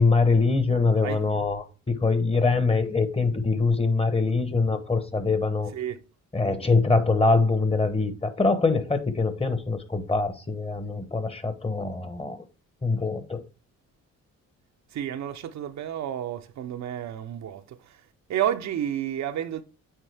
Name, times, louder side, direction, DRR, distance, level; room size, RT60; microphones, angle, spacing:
voice 1, 0.0-5.7 6.3-12.4 12.8-13.4, left 3 dB, 20° left, 1.1 m, -23 dB
voice 2, 0.9-1.2 5.7-6.0 14.9-18.0 18.3-19.6, right 10 dB, 65° right, 0.7 m, -31 dB
9.0 x 3.7 x 3.4 m
cardioid pair, 90°, 30 cm